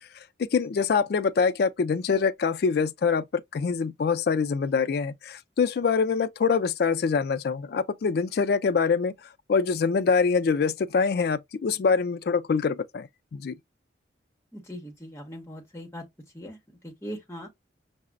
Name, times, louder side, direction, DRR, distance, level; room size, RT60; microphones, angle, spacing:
voice 1, 0.4-9.1 9.5-13.5, left 5 dB, 55° left, 0.3 m, -25 dB
voice 2, 14.5-16.0 16.3-17.5, equal, 15° left, 1.0 m, -40 dB
5.6 x 2.0 x 2.4 m
head